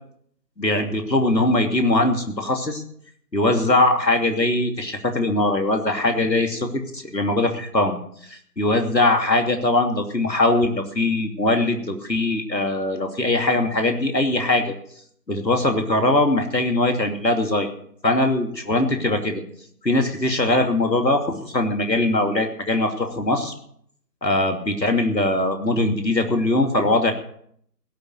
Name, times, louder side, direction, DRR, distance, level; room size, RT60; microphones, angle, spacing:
voice 1, 0.6-2.8 3.3-8.0 8.3-14.7 15.3-17.7 18.0-19.4 19.8-23.5 24.2-27.1, left 2 dB, 85° left, 4 dB, 2.9 m, -21 dB
17.0 x 9.4 x 6.6 m, 0.66 s
figure-of-eight pair, 160°, 49 cm